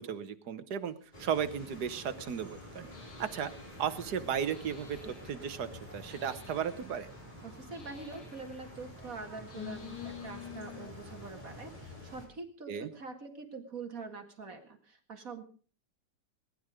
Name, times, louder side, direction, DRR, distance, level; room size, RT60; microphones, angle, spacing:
voice 1, 0.0-2.9 3.2-3.5 3.8-7.1 12.7-12.9, right 8 dB, 70° right, 11 dB, 1.6 m, -35 dB
sound 1, 1.1-12.3, left 1 dB, 25° left, 4.9 m, -49 dB
sound 2, 2.9-10.9, left 9 dB, 75° left, 2.7 m, -50 dB
voice 2, 7.4-15.5, right 4 dB, 55° right, 5 dB, 2.4 m, -45 dB
19.5 x 10.5 x 5.0 m, 0.41 s
omnidirectional pair, 1.8 m